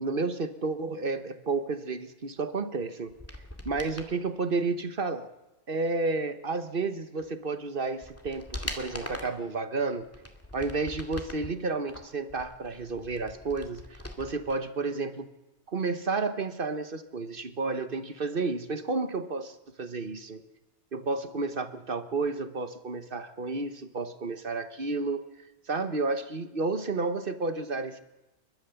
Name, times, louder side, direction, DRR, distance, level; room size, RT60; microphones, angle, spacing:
voice 1, 0.0-3.2 3.6-5.3 5.7-10.1 10.5-15.3 15.7-20.4 20.9-25.2 25.7-28.0, right 3 dB, 50° right, 11 dB, 1.4 m, -31 dB
sound 1, 3.1-4.1 7.2-7.3 7.8-9.4 10.0-11.5 11.9-14.6 14.8-14.9, left 1 dB, 10° left, 2.2 m, -41 dB
29.5 x 12.5 x 7.1 m, 1.0 s
omnidirectional pair, 1.2 m